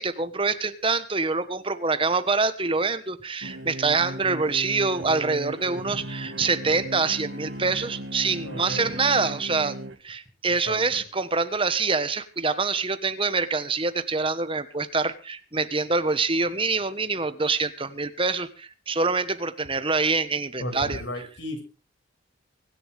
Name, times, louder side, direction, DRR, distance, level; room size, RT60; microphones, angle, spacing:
voice 1, 0.0-9.7 10.0-21.3, right 4 dB, 25° right, 12 dB, 1.3 m, -25 dB
sound 1, 3.4-10.0, right 1 dB, 70° right, 2.0 m, -37 dB
voice 2, 8.4-8.9 10.5-11.0 20.6-21.6, left 1 dB, 65° left, 5 dB, 5.9 m, -35 dB
24.5 x 11.0 x 3.5 m, 0.34 s
head